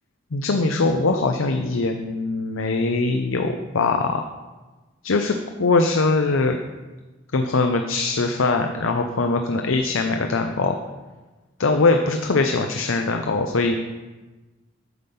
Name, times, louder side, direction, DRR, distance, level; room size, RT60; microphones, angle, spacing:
voice 1, 0.3-4.3 5.0-6.6 7.3-10.8 11.6-13.7, left 3 dB, 90° left, 5 dB, 0.6 m, -22 dB
9.6 x 5.4 x 6.9 m, 1.2 s
head